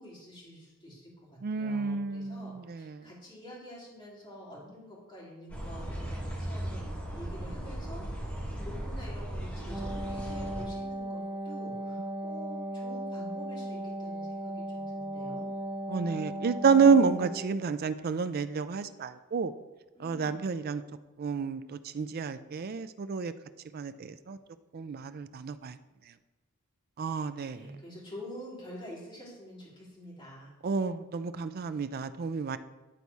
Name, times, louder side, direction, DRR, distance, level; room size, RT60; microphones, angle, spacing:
voice 1, 0.0-15.5 19.9-20.5 27.4-30.5, equal, 25° left, 2.7 m, -47 dB
voice 2, 1.4-3.1 15.9-19.5 20.0-20.8 21.2-23.3 23.7-24.4 24.7-25.8 27.0-27.7 30.6-32.6, right 5 dB, 45° right, 0.4 m, -29 dB
sound 1, 5.5-10.6, equal, 5° left, 1.9 m, -37 dB
Wind instrument woodwind instrument, 9.6-17.5, right 1 dB, 10° right, 1.1 m, -37 dB
10.0 x 4.1 x 4.7 m
head